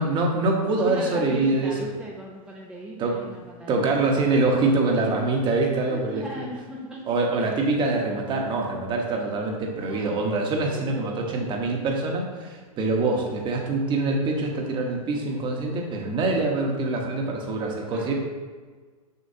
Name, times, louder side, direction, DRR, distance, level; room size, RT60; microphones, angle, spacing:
voice 1, 0.0-1.9 3.0-3.4 3.7-6.5 7.0-18.1, right 2 dB, 25° right, 1 dB, 1.0 m, -25 dB
voice 2, 0.8-3.9 4.9-5.2 5.9-7.0 9.8-10.3 10.6-11.4 17.9-18.1, right 1 dB, 5° right, -4 dB, 0.6 m, -39 dB
6.6 x 6.2 x 2.7 m, 1.5 s
hypercardioid pair, 135°, 19 cm